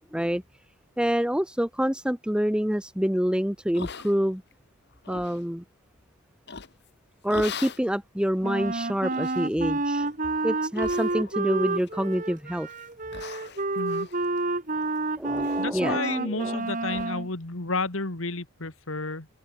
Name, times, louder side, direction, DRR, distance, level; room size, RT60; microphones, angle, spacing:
voice 1, 0.1-0.4 1.0-4.4 5.1-5.6 7.2-10.1 10.4-12.7 15.2-16.6, equal, 5° right, 1.1 m, -27 dB
sound 1, 3.7-4.5 4.9-5.4 6.5-6.9 7.3-7.9 8.4-8.5 9.1-9.5 9.9-10.2 10.7-11.5 11.8-12.3 12.7-12.8 13.1-15.0 15.3-15.6 15.9-16.0 16.4-16.5 16.9-17.1, left 5 dB, 50° left, 1.5 m, -41 dB
Wind instrument woodwind instrument, 8.4-17.3, right 2 dB, 40° right, 1.9 m, -29 dB
voice 2, 13.8-14.1 15.6-19.3, left 3 dB, 65° left, 2.1 m, -31 dB
head